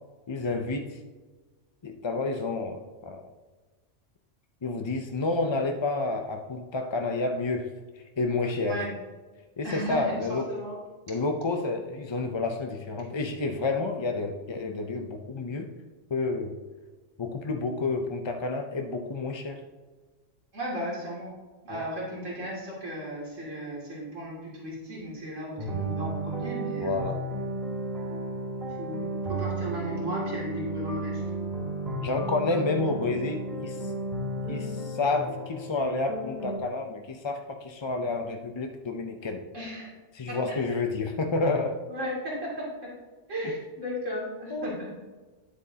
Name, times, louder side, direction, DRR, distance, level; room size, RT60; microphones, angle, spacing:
voice 1, 0.3-1.0 1.8-3.2 4.6-7.7 8.0-8.8 9.6-10.5 11.1-15.7 16.1-16.6 17.2-19.6 21.7-21.8 26.8-27.2 32.0-33.9 34.5-39.4 40.1-41.8 44.5-44.7, left 3 dB, 40° left, 4 dB, 0.4 m, -30 dB
voice 2, 8.6-8.9 9.6-10.8 20.5-21.3 21.6-27.0 28.8-31.2 39.5-39.9 40.3-40.6 41.9-42.9 43.3-45.0, equal, 80° right, -5 dB, 3.1 m, -35 dB
sound 1, 25.6-36.6, right 1 dB, 35° right, 2.3 m, -33 dB
10.0 x 8.1 x 2.8 m, 1.3 s
omnidirectional pair, 1.3 m